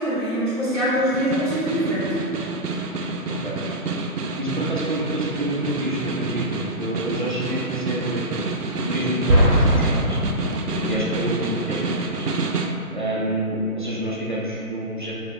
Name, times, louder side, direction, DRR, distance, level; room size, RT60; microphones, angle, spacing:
voice 1, 0.0-2.1 10.7-11.0, equal, 20° left, -14 dB, 0.7 m, -24 dB
Snare drum, 1.0-12.8, right 3 dB, 90° right, 0.6 m, -28 dB
voice 2, 3.3-3.6 4.4-8.3 8.8-10.2 10.8-12.2 12.9-15.1, right 1 dB, 35° right, -6 dB, 0.5 m, -27 dB
Explosion, 9.3-11.1, equal, 15° right, 0.8 m, -20 dB
6.4 x 3.3 x 2.3 m, 2.6 s
figure-of-eight pair, 140°, 45 cm